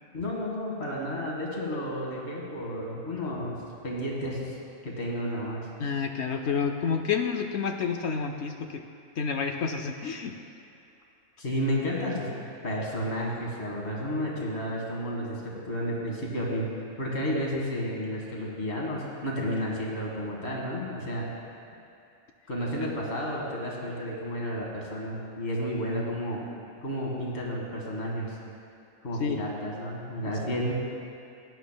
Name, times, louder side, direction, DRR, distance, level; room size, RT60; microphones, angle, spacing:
voice 1, 0.1-4.6 4.8-5.6 11.4-16.7 17.0-21.3 22.5-26.4 26.8-28.4 29.0-30.7, equal, 50° left, -3 dB, 2.0 m, -32 dB
voice 2, 5.8-8.8 9.2-10.3 29.2-29.4, left 6 dB, 65° left, 5 dB, 0.7 m, -29 dB
16.0 x 10.5 x 2.2 m, 2.7 s
omnidirectional pair, 1.5 m